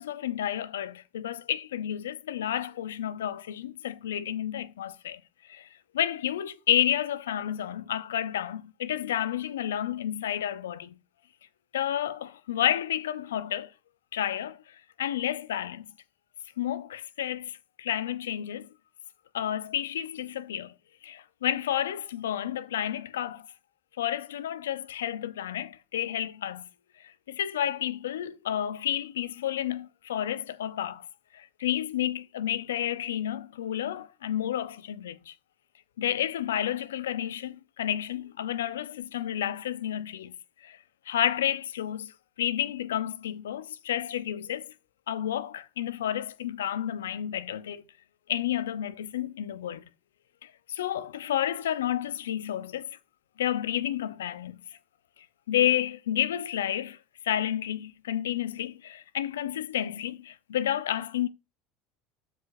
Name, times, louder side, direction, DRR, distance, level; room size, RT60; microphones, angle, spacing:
voice 1, 0.0-5.2 5.5-5.7 5.9-10.9 11.7-13.7 14.1-14.6 15.0-15.9 16.6-18.7 19.3-20.7 21.0-23.5 24.0-26.6 27.3-31.0 31.3-35.3 36.0-40.3 40.6-40.8 41.1-42.1 42.4-44.7 45.1-47.8 48.3-49.8 50.7-52.9 53.4-54.6 55.5-57.0 57.2-61.3, left 11 dB, 80° left, 0.5 m, -30 dB
13.0 x 4.9 x 2.6 m
hypercardioid pair, 75°, 0 cm